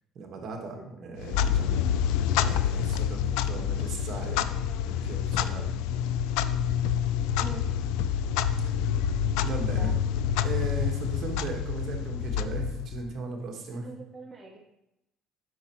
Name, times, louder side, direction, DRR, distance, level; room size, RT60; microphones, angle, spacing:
voice 1, 0.1-1.8 2.4-4.5 4.8-5.7 9.4-9.9 10.4-13.9, right 4 dB, 45° right, 2 dB, 1.4 m, -37 dB
voice 2, 0.7-1.2 7.4-7.8 9.5-10.1 13.8-14.6, right 4 dB, 15° right, -2 dB, 0.9 m, -44 dB
Clock, 1.2-13.1, left 9 dB, 90° left, 0.3 m, -27 dB
8.1 x 6.1 x 3.0 m, 0.86 s
cardioid pair, 125°, 0 cm